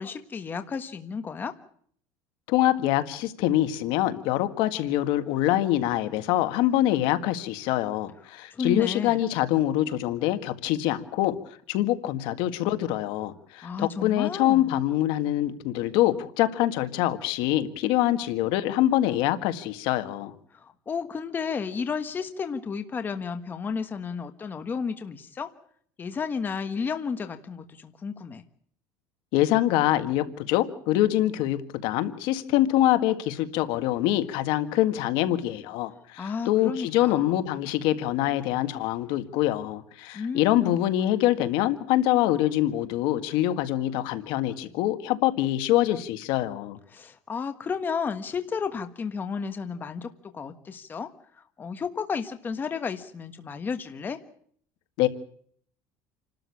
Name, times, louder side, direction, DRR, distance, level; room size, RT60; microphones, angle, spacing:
voice 1, 0.0-1.5 8.5-9.2 13.6-14.8 20.5-25.5 26.0-28.4 36.2-37.6 40.1-40.8 46.9-51.1 51.6-54.2, left 5 dB, 20° left, 8 dB, 1.4 m, -32 dB
voice 2, 2.5-20.3 29.3-46.8 55.0-55.1, left 14 dB, 70° left, 10 dB, 1.9 m, -25 dB
28.5 x 13.0 x 8.5 m, 0.62 s
cardioid pair, 145°, 9 cm